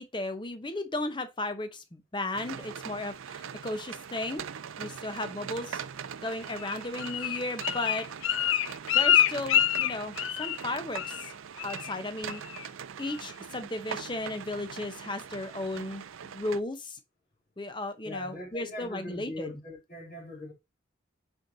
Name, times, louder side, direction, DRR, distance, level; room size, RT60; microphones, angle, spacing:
voice 1, 0.0-4.4 4.8-5.8 6.2-8.1 8.9-11.3 11.6-12.4 13.0-17.0 17.6-19.5, left 2 dB, 25° left, 0.8 m, -35 dB
sound 1, 2.3-16.6, right 7 dB, 85° right, 0.5 m, -41 dB
Bird, 6.6-10.7 10.9-11.3 11.6-11.9 12.3-12.7 13.1-13.2, left 10 dB, 75° left, 0.4 m, -26 dB
voice 2, 18.0-20.5, left 2 dB, 45° left, 2.4 m, -40 dB
5.4 x 4.5 x 3.9 m
head